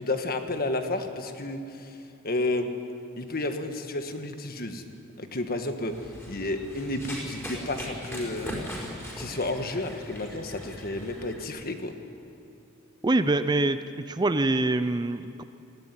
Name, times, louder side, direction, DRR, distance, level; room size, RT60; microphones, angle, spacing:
voice 1, 0.0-2.0 2.2-2.7 3.2-4.8 5.2-6.0 6.3-8.6 9.2-11.9, left 2 dB, 45° left, 6 dB, 1.5 m, -31 dB
Run, 5.9-11.4, equal, 10° left, 5.3 m, -39 dB
voice 2, 13.0-13.8 14.1-15.4, right 2 dB, 20° right, 11 dB, 0.5 m, -24 dB
19.0 x 16.5 x 9.9 m, 2.7 s
head